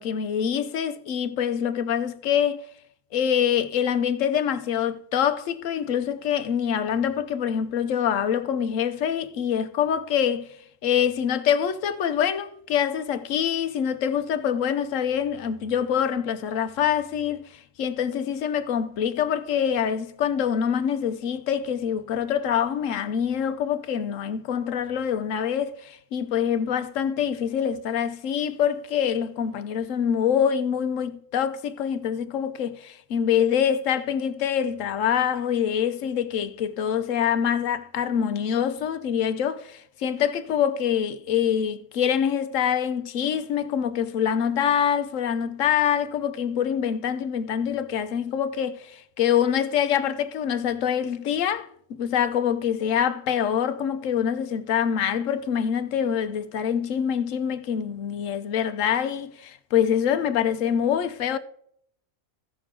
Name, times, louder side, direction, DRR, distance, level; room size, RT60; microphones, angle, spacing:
voice 1, 0.0-2.6 3.1-10.5 10.8-61.4, left 8 dB, 75° left, 1.1 m, -25 dB
15.0 x 6.4 x 3.7 m
omnidirectional pair, 1.4 m